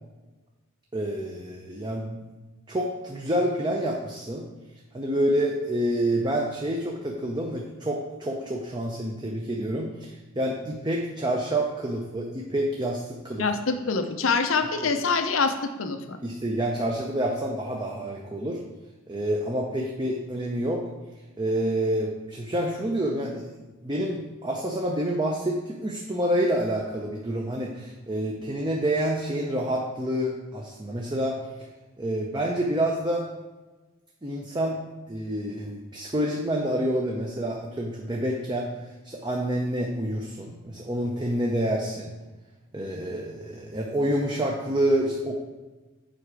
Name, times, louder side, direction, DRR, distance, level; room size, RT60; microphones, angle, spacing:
voice 1, 0.9-2.2 2.7-4.4 4.9-13.4 16.2-18.6 19.1-20.8 21.4-23.5 23.8-31.4 32.0-33.2 34.2-38.7 39.0-42.1 42.7-45.4, right 1 dB, 20° right, -1 dB, 0.6 m, -28 dB
voice 2, 13.4-15.5 15.8-16.2, left 4 dB, 80° left, 7 dB, 0.7 m, -25 dB
7.8 x 4.9 x 4.8 m, 1.2 s
head